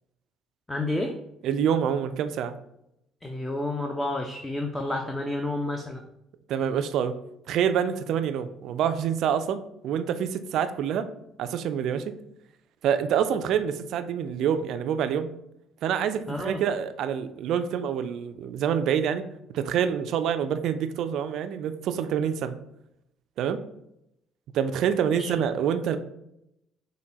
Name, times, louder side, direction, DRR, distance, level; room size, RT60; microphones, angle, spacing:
voice 1, 0.7-1.2 3.2-6.0 16.3-16.6 25.1-25.4, left 2 dB, 10° left, 3 dB, 0.5 m, -30 dB
voice 2, 1.4-2.5 6.5-7.1 7.5-11.1 11.4-12.1 12.8-15.3 15.8-19.2 19.5-22.5 23.4-23.6 24.5-26.0, right 8 dB, 55° right, 10 dB, 0.3 m, -26 dB
6.5 x 2.2 x 3.1 m, 0.81 s
figure-of-eight pair, 50°, 0 cm